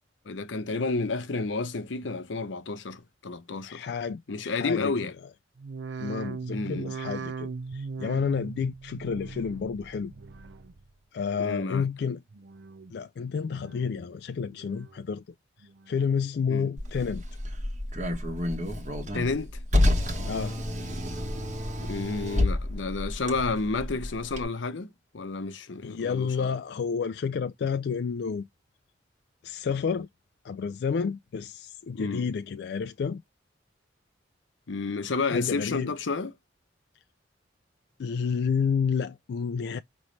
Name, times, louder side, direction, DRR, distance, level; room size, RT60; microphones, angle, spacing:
voice 1, 0.3-3.8 4.3-5.1 6.5-6.9 11.4-11.9 16.5-16.7 19.1-19.5 21.8-24.9 25.1-26.5 31.9-32.3 34.7-36.3, left 3 dB, 85° left, 0.7 m, -31 dB
voice 2, 3.6-4.9 6.0-10.1 11.1-12.2 12.9-15.2 15.6-17.2 20.3-20.6 25.8-28.5 29.4-30.1 30.4-33.2 35.2-35.9 38.0-39.8, left 6 dB, 60° left, 0.3 m, -30 dB
sound 1, 5.6-10.9 11.2-11.8 12.3-13.0 13.4-14.1 14.5-15.1 15.6-16.2 16.7-16.8, right 4 dB, 70° right, 0.5 m, -40 dB
Car, 16.8-24.4, left 1 dB, 40° right, 1.3 m, -29 dB
5.4 x 2.9 x 3.1 m
head